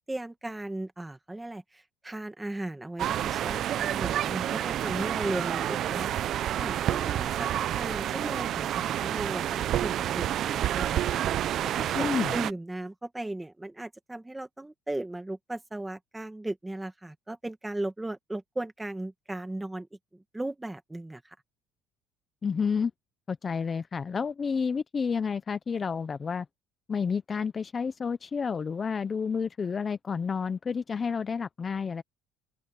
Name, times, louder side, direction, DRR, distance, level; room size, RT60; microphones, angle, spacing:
voice 1, 0.1-11.5 11.7-19.9 20.1-21.3, right 2 dB, 5° right, 1.6 m, -37 dB
sound 1, 3.0-12.5, right 11 dB, 40° right, 0.5 m, -29 dB
voice 2, 11.9-12.3 22.4-22.9 23.3-26.5 26.9-32.0, left 5 dB, 20° left, 0.4 m, -30 dB
open air
cardioid pair, 175°, 0 cm